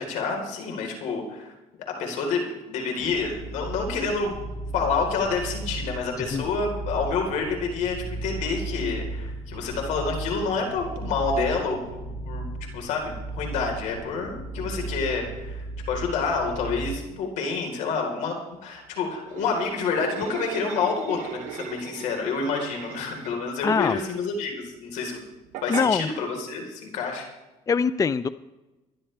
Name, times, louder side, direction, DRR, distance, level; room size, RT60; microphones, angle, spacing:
voice 1, 0.0-1.5 2.0-4.4 4.7-12.5 12.7-25.2 25.6-27.2, left 4 dB, 80° left, 1 dB, 4.1 m, -28 dB
sound 1, 3.0-16.9, right 2 dB, 45° left, 3.5 m, -35 dB
sound 2, 19.3-23.5 25.5-25.9, right 8 dB, 80° right, 1.1 m, -38 dB
voice 2, 23.6-24.0 25.7-26.1 27.7-28.3, left 5 dB, 25° left, 14 dB, 0.5 m, -23 dB
23.0 x 11.5 x 3.4 m, 1.1 s
cardioid pair, 95°, 12 cm